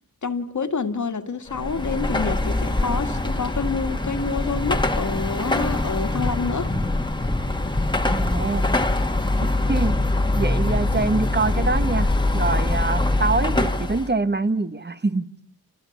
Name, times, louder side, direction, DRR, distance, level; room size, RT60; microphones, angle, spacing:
voice 1, 0.2-6.7 8.4-8.5, left 4 dB, 55° left, 2.0 m, -28 dB
Car passing by / Traffic noise roadway noise / Engine, 1.5-14.1, left 2 dB, 15° left, 1.8 m, -23 dB
voice 2, 8.1-8.7 9.7-10.0 10.3-15.3, right 3 dB, 30° right, 1.4 m, -25 dB
29.0 x 28.5 x 7.2 m
wide cardioid pair, 105°, 35 cm